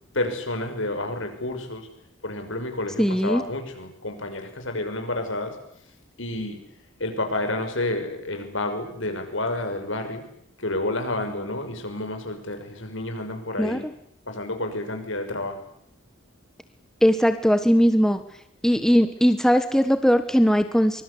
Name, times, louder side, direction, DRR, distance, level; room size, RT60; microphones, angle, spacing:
voice 1, 0.1-1.9 2.2-5.6 6.2-6.6 7.0-10.2 10.6-13.8 14.3-15.6, left 2 dB, 70° left, 6 dB, 6.3 m, -30 dB
voice 2, 3.0-3.4 13.6-13.8 17.0-18.2 18.6-21.0, equal, ahead, 9 dB, 1.3 m, -19 dB
24.0 x 23.5 x 8.5 m, 0.71 s
head